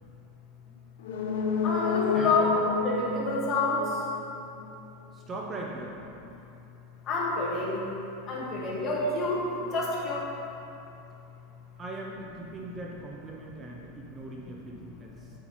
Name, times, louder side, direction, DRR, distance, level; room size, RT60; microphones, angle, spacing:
sound 1, 1.0-4.7 5.0-5.1, left 5 dB, 85° left, 0.7 m, -30 dB
voice 1, 1.6-3.8 7.1-7.9 8.3-9.4 9.7-10.2, left 3 dB, 30° left, -5 dB, 1.6 m, -28 dB
voice 2, 2.1-2.5 5.1-6.0 11.8-15.3, right 2 dB, 20° right, -1 dB, 0.6 m, -40 dB
7.9 x 7.6 x 3.0 m, 2.8 s
supercardioid pair, 150°, 0 cm